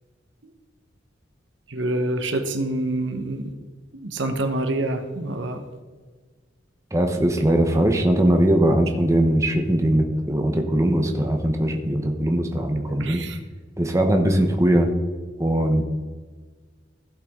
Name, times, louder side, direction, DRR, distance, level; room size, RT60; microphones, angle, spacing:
voice 1, 1.7-3.5 3.9-5.6 13.0-13.4, right 1 dB, 70° right, 7 dB, 1.1 m, -26 dB
voice 2, 6.9-13.2 13.8-14.9 15.4-15.8, right 1 dB, 15° right, 3 dB, 0.9 m, -20 dB
16.0 x 5.7 x 3.7 m, 1.4 s
head